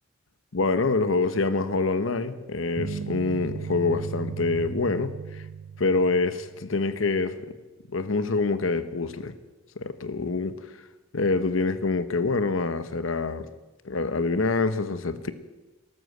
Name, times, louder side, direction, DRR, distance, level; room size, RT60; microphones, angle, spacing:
voice 1, 0.5-5.4 5.8-7.4 7.9-9.3 9.8-10.6 11.1-13.5 13.8-15.3, left 3 dB, 85° left, 1.0 m, -26 dB
sound 1, 2.8-7.0, right 6 dB, 70° right, 0.5 m, -36 dB
13.5 x 13.0 x 6.7 m
head